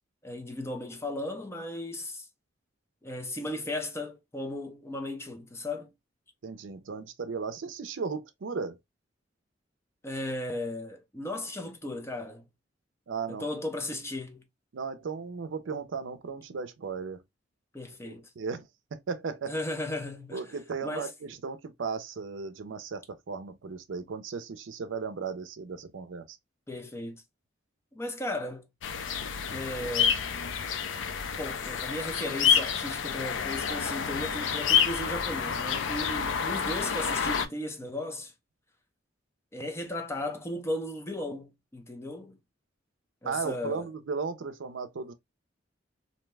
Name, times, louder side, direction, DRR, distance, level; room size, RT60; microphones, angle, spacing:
voice 1, 0.2-2.3 3.0-5.9 10.0-12.4 13.3-14.4 17.7-18.3 19.5-20.6 20.8-21.1 26.7-27.2 27.9-28.7 29.5-30.2 31.4-38.3 39.5-42.4 43.2-43.9, left 1 dB, 15° left, 0.5 m, -36 dB
voice 2, 6.4-8.8 13.1-13.5 14.7-17.2 18.0-18.7 18.9-19.6 20.3-26.4 43.2-45.1, right 5 dB, 75° right, 0.5 m, -36 dB
sound 1, 28.8-37.5, left 7 dB, 75° left, 0.4 m, -29 dB
2.7 x 2.1 x 3.2 m
head